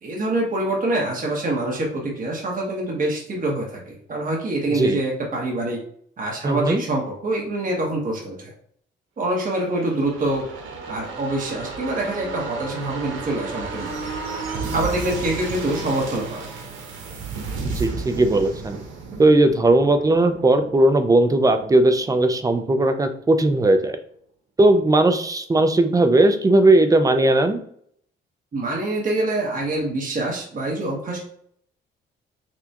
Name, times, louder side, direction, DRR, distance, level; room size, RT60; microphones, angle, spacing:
voice 1, 0.0-5.8 6.2-8.5 9.2-10.5 10.9-14.1 14.7-16.5 28.5-31.3, right 2 dB, 45° right, -2 dB, 1.4 m, -25 dB
voice 2, 6.4-6.8 17.6-18.8 19.2-24.0 24.6-27.6, right 2 dB, 15° right, 8 dB, 0.5 m, -18 dB
sound 1, 9.6-23.0 23.3-23.4, right 4 dB, 85° right, 0.9 m, -33 dB
5.8 x 2.3 x 2.9 m, 0.64 s
cardioid pair, 90°, 20 cm